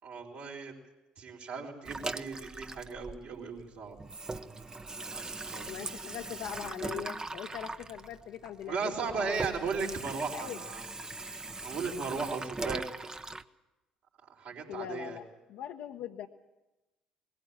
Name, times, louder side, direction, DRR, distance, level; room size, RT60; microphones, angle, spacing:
voice 1, 0.0-0.8 1.2-4.0 4.3-5.7 8.7-10.8 11.6-12.8 14.2-15.2, right 5 dB, 65° right, -2 dB, 4.0 m, -37 dB
Water tap faucet / Sink (filling or washing), 1.8-3.6 3.9-13.4, right 3 dB, 20° right, 0.8 m, -40 dB
voice 2, 5.7-8.9 9.2-9.6 10.3-10.6 14.7-16.3, left 10 dB, 65° left, 1 dB, 0.9 m, -41 dB
20.0 x 15.5 x 8.8 m, 1.0 s
hypercardioid pair, 55°, 3 cm